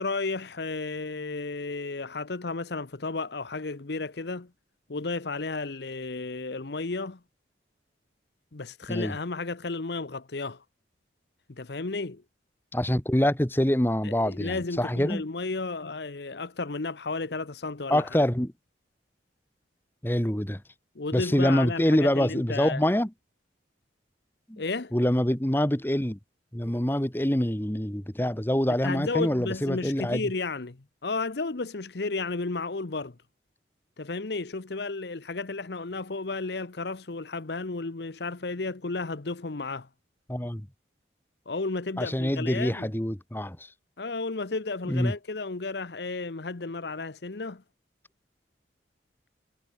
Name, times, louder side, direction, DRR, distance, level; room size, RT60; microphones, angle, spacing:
voice 1, 0.0-4.5 4.9-7.2 8.5-10.6 11.5-12.2 14.0-18.1 20.9-22.8 24.6-24.9 28.8-33.2 34.0-39.9 41.5-42.9 44.0-47.6, left 3 dB, 65° left, 0.9 m, -33 dB
voice 2, 12.7-15.2 17.9-18.5 20.0-20.6 21.1-23.1 24.5-24.6 24.9-26.2 26.5-30.2 40.3-40.6 42.0-43.6 44.9-45.1, equal, 10° left, 1.3 m, -25 dB
head